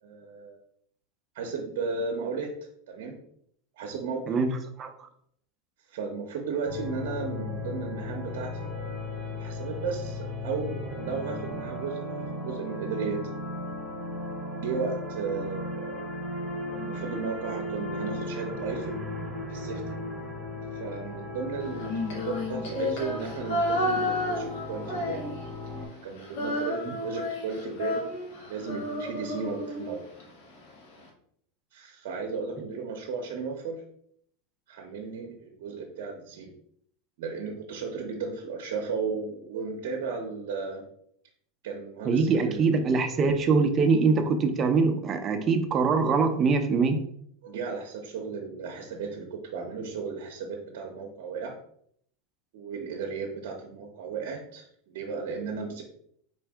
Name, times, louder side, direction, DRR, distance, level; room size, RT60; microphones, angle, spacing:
voice 1, 0.0-0.6 1.3-2.5 2.9-3.1 3.7-4.4 5.9-8.7 9.2-13.2 14.6-16.3 16.7-18.9 19.5-20.0 20.7-25.3 26.0-28.0 28.3-30.0 31.7-33.8 34.7-36.5 37.2-40.8 41.6-42.7 47.4-51.5 52.5-55.8, right 5 dB, 70° right, 1 dB, 0.7 m, -35 dB
voice 2, 4.8-5.1 42.0-47.0, right 4 dB, 30° right, 6 dB, 0.6 m, -23 dB
sound 1, 6.7-25.9, left 1 dB, ahead, 1.0 m, -36 dB
Female singing, 21.8-25.7 25.9-30.2, left 1 dB, 70° left, 1.3 m, -31 dB
4.5 x 2.6 x 3.4 m, 0.67 s
supercardioid pair, 135°, 0 cm